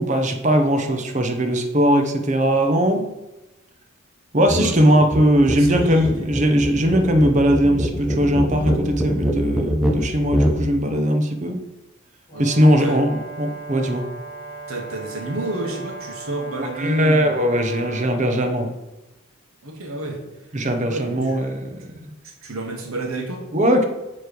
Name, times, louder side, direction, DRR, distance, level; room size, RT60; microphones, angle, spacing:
voice 1, 0.0-3.0 4.3-11.6 12.4-14.1 16.6-18.7 20.5-21.9 23.5-23.9, equal, 35° right, 5 dB, 0.8 m, -19 dB
sound 1, 4.5-4.7 5.0-10.6, right 1 dB, 5° right, 0.6 m, -23 dB
voice 2, 4.6-5.1 5.5-6.3 12.3-13.0 14.7-17.4 19.6-20.2 20.9-21.4 22.2-23.5, right 2 dB, 85° right, 3 dB, 1.3 m, -30 dB
Brass instrument, 12.3-18.1, right 3 dB, 25° left, 1.6 m, -37 dB
9.0 x 3.2 x 5.2 m, 1.0 s
head